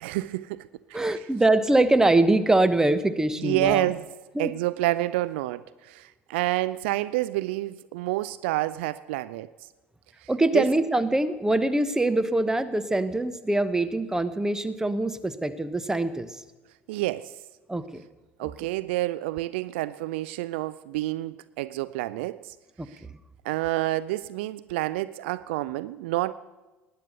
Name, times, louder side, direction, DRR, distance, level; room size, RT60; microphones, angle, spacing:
voice 1, 0.0-1.0 3.4-4.1 4.4-9.5 10.2-10.3 10.5-10.6 16.9-17.4 18.4-22.5 22.9-23.0 23.4-26.3, right 17 dB, 60° right, 0.4 m, -28 dB
voice 2, 0.9-3.9 4.3-4.5 10.3-16.4 17.7-18.0 18.4-18.5 22.8-23.1, right 2 dB, 10° right, 1.0 m, -23 dB
19.0 x 9.5 x 6.8 m
figure-of-eight pair, 60°, 7 cm